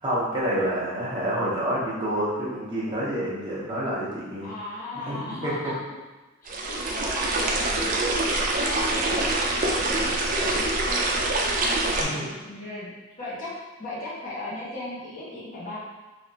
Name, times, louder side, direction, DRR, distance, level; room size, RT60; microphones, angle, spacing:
voice 1, 0.0-4.5 5.1-5.5 12.0-12.3, right 1 dB, 20° right, -7 dB, 0.8 m, -28 dB
voice 2, 4.4-5.9 6.4-9.4 9.8-11.2 11.8-12.9 13.2-13.5 13.8-15.8, left 2 dB, 40° left, -8 dB, 1.0 m, -37 dB
sound 1, 6.5-12.0, right 2 dB, 40° right, 0.4 m, -25 dB
3.3 x 2.8 x 2.7 m, 1.2 s
head